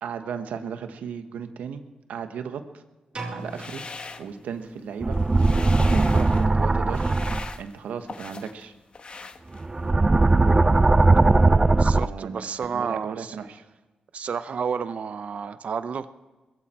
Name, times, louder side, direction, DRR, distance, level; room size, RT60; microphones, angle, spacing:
voice 1, 0.0-1.8 2.1-2.8 3.3-3.8 4.2-5.2 5.8-7.2 7.6-8.7 11.8-12.4 12.7-13.6, right 7 dB, 85° right, 8 dB, 1.2 m, -35 dB
sound 1, 3.1-5.0, right 2 dB, 45° right, 3.9 m, -39 dB
sound 2, 3.4-4.8 5.1-6.5 6.9-8.6 8.9-9.9, left 4 dB, 45° left, 1.1 m, -40 dB
sound 3, 5.0-7.5 9.5-12.1, right 3 dB, 25° right, 0.4 m, -19 dB
voice 2, 11.7-13.3 14.1-16.1, right 6 dB, 60° right, 12 dB, 0.7 m, -31 dB
21.0 x 15.5 x 4.3 m, 1.2 s
cardioid pair, 70°, 3 cm